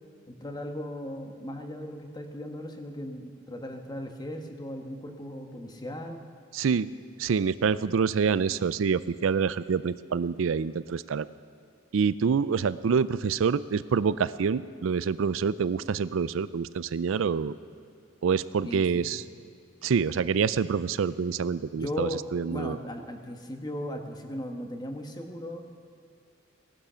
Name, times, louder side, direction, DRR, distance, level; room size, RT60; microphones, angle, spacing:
voice 1, 0.3-6.2 18.6-19.1 21.7-22.2 22.5-25.7, left 1 dB, 20° left, 4 dB, 1.3 m, -37 dB
voice 2, 6.5-6.9 7.2-11.3 11.9-17.5 18.2-19.2 19.8-22.8, right 6 dB, 80° right, 16 dB, 0.4 m, -26 dB
17.0 x 12.0 x 5.7 m, 2.4 s
head